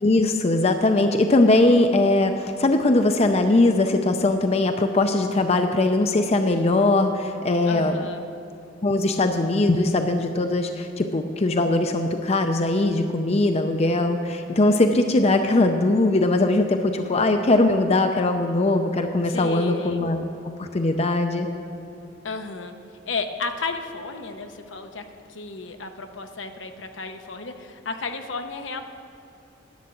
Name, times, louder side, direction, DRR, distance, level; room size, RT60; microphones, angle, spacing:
voice 1, 0.0-7.9 8.8-20.3 20.6-21.5, left 2 dB, 35° left, 6 dB, 0.5 m, -20 dB
voice 2, 7.6-8.3 19.3-20.0 22.2-22.7 23.1-25.0 25.3-28.8, left 3 dB, 75° left, 6 dB, 0.8 m, -33 dB
11.5 x 6.9 x 7.7 m, 2.8 s
head